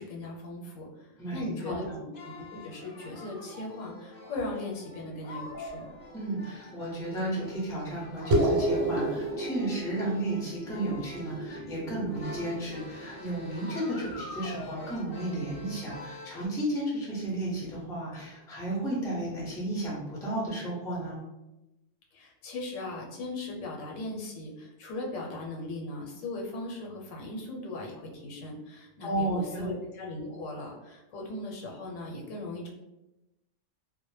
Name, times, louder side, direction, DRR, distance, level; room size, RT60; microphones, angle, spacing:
voice 1, 0.0-2.1 2.4-5.9 22.1-32.7, left 2 dB, 85° left, -1 dB, 1.0 m, -38 dB
voice 2, 1.2-2.0 6.1-21.2 29.0-29.7, right 1 dB, 5° left, -5 dB, 0.4 m, -33 dB
sound 1, 2.1-16.5, left 1 dB, 55° left, 0.6 m, -44 dB
sound 2, 8.3-13.1, right 1 dB, 75° right, 0.9 m, -31 dB
2.1 x 2.1 x 3.0 m, 0.97 s
omnidirectional pair, 1.3 m